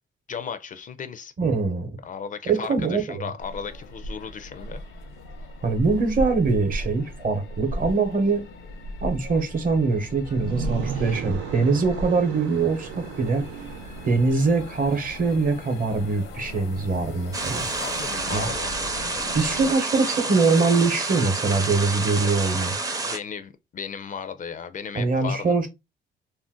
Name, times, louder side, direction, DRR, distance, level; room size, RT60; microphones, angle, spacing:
voice 1, 0.3-1.3 2.0-4.8 10.8-11.2 17.8-18.7 23.0-25.5, left 6 dB, 40° left, 0.4 m, -35 dB
voice 2, 1.4-1.9 2.5-3.3 5.6-8.4 9.0-13.5 14.0-17.7 18.3-18.5 19.3-22.8 25.0-25.7, right 4 dB, 45° right, 0.8 m, -23 dB
sound 1, 3.4-19.7, left 1 dB, 85° left, 0.7 m, -37 dB
sound 2, 10.2-15.3, right 8 dB, 90° right, 0.4 m, -36 dB
sound 3, 17.3-23.2, right 3 dB, 20° right, 0.5 m, -29 dB
2.5 x 2.1 x 3.6 m
cardioid pair, 90°, 20 cm